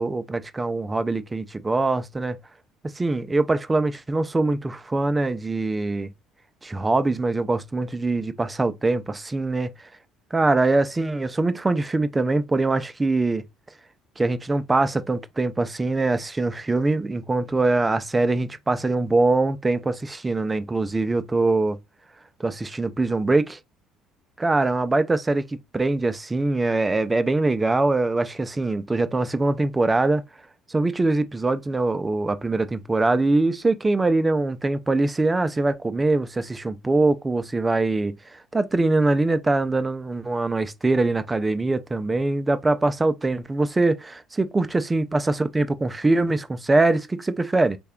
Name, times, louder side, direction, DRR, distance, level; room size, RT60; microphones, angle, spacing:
voice 1, 0.0-2.4 3.0-6.1 6.6-9.7 10.3-13.4 14.2-21.8 22.4-23.6 24.4-25.5 25.7-30.2 30.7-38.2 38.5-47.8, right 2 dB, 15° right, 0.4 m, -23 dB
3.3 x 2.2 x 3.5 m
cardioid pair, 105°, 0 cm